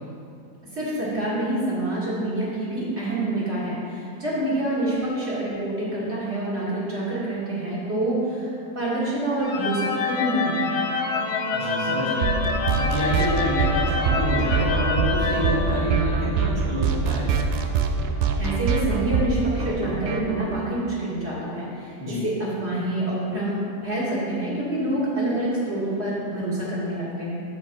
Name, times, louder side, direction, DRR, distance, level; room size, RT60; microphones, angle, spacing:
voice 1, 0.7-10.8 18.4-27.4, right 1 dB, 45° right, -8 dB, 2.2 m, -27 dB
sound 1, 9.4-16.4, left 4 dB, 60° left, 0.8 m, -27 dB
voice 2, 11.5-12.4 12.8-17.3 22.0-22.2, left 1 dB, 15° left, -7 dB, 1.1 m, -28 dB
sound 2, 12.2-20.6, right 5 dB, 85° right, 1.2 m, -24 dB
7.3 x 6.5 x 4.5 m, 2.5 s
omnidirectional pair, 1.7 m